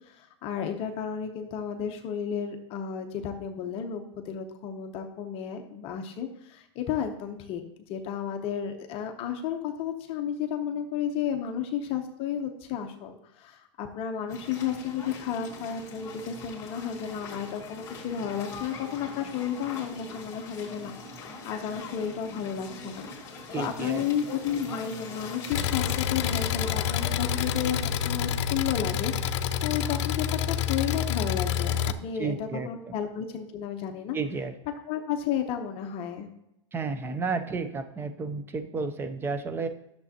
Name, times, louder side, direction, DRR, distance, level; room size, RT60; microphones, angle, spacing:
voice 1, 0.1-7.6 7.9-23.1 23.6-34.2 34.7-36.3, left 8 dB, 35° left, 5 dB, 0.8 m, -32 dB
sound 1, 14.3-27.8, left 3 dB, 20° left, 2.0 m, -42 dB
voice 2, 23.5-24.1 32.2-33.0 34.1-34.5 36.7-39.7, right 4 dB, 15° right, 9 dB, 0.5 m, -32 dB
Engine, 25.5-31.9, left 9 dB, 65° left, 0.5 m, -28 dB
11.0 x 6.9 x 2.9 m, 0.84 s
supercardioid pair, 135°, 16 cm